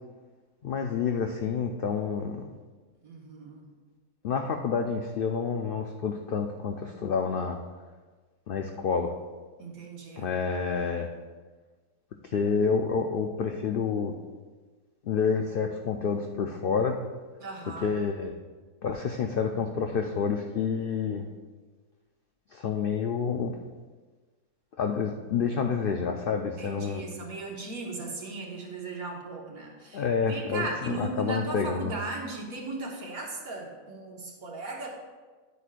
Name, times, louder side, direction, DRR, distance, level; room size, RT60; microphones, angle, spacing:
voice 1, 0.6-2.4 4.2-7.6 8.5-9.1 10.2-11.1 12.2-14.1 15.0-17.0 17.8-18.3 18.8-21.3 22.5-23.6 24.8-27.0 29.9-31.9, left 6 dB, 75° left, 3 dB, 0.5 m, -28 dB
voice 2, 3.0-3.7 9.6-10.3 17.4-17.9 26.6-34.9, right 2 dB, 75° right, -1 dB, 1.9 m, -37 dB
10.0 x 8.1 x 2.5 m, 1.4 s
omnidirectional pair, 1.5 m